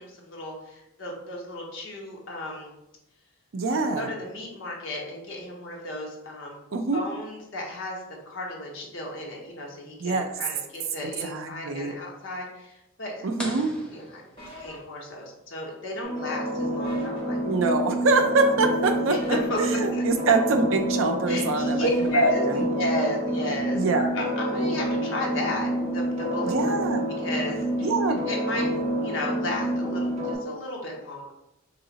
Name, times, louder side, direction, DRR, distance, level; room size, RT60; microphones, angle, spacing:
voice 1, 0.0-2.7 3.9-6.6 6.9-13.3 13.9-17.4 19.1-20.0 21.3-26.6 27.2-27.9 28.3-28.7 29.0-31.3, left 1 dB, 60° left, -1 dB, 0.9 m, -33 dB
voice 2, 3.5-4.1 6.7-7.0 10.0-10.3 11.0-11.9 13.2-13.7 17.4-22.6 23.8-24.1 26.4-27.0 27.8-28.2, right 3 dB, 65° right, 5 dB, 0.5 m, -25 dB
sound 1, 13.4-15.1, equal, 5° left, 0.3 m, -41 dB
sound 2, 14.4-14.8 16.8-17.2 19.2-19.6 21.8-22.3, left 2 dB, 25° left, 1.4 m, -42 dB
sound 3, 16.0-30.3, equal, 30° right, 0.7 m, -28 dB
3.1 x 2.9 x 4.0 m, 0.88 s
head